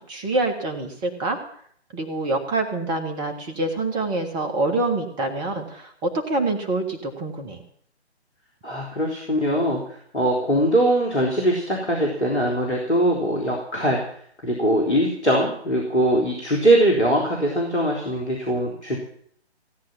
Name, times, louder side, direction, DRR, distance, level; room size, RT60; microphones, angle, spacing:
voice 1, 0.1-1.4 1.9-7.6, right 2 dB, 15° right, 5 dB, 1.6 m, -26 dB
voice 2, 8.6-14.2 14.4-19.0, right 1 dB, 75° left, 0 dB, 3.8 m, -22 dB
16.5 x 9.5 x 7.3 m, 0.62 s
figure-of-eight pair, 135°, 34 cm